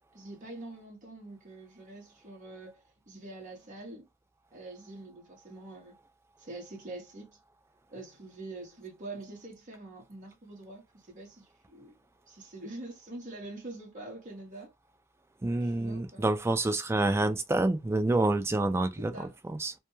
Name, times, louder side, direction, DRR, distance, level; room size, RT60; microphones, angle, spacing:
voice 1, 0.1-2.8 3.1-4.1 4.5-6.0 6.4-7.3 7.9-11.9 12.3-14.7 15.6-16.3 19.1-19.3, right 2 dB, 40° right, 0.8 m, -45 dB
voice 2, 15.4-19.7, right 2 dB, 15° right, 0.3 m, -28 dB
2.2 x 2.1 x 3.0 m
head